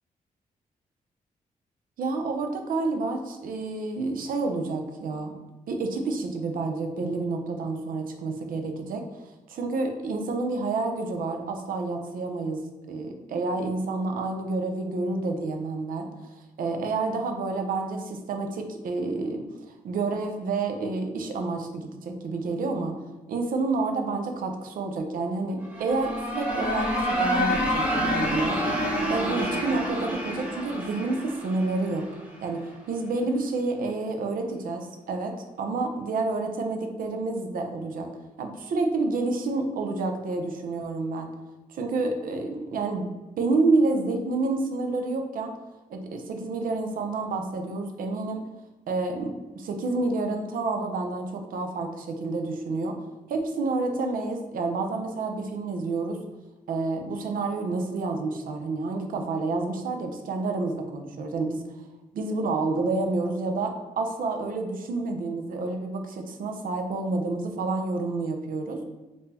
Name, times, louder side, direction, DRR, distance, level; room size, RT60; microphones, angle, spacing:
voice 1, 2.0-5.4 5.7-9.0 9.5-12.6 12.9-16.1 16.6-19.4 19.8-22.9 23.3-28.6 29.1-32.1 32.4-38.1 38.4-41.3 41.7-43.1 43.4-45.5 45.9-48.4 48.9-52.9 53.3-56.2 56.7-61.6 62.1-68.8, right 3 dB, 75° right, 4 dB, 0.5 m, -29 dB
sound 1, 25.6-32.4, equal, 10° right, 1.0 m, -28 dB
3.6 x 2.6 x 2.8 m, 1.1 s
cardioid pair, 80°, 15 cm